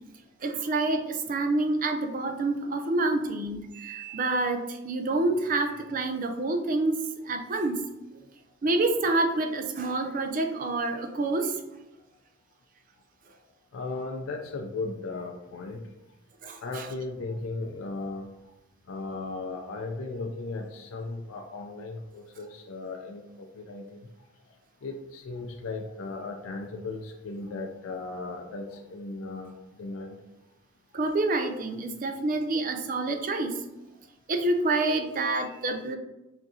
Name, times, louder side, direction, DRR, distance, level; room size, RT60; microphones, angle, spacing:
voice 1, 0.4-7.0 7.2-7.8 8.6-11.6 16.4-16.9 30.9-33.6 34.3-36.0, right 2 dB, 40° right, 5 dB, 0.4 m, -27 dB
voice 2, 13.7-15.9 16.6-18.3 18.9-24.0 24.8-29.5 29.8-30.2, left 3 dB, 90° left, 2 dB, 0.4 m, -36 dB
5.9 x 2.6 x 2.7 m, 0.96 s
head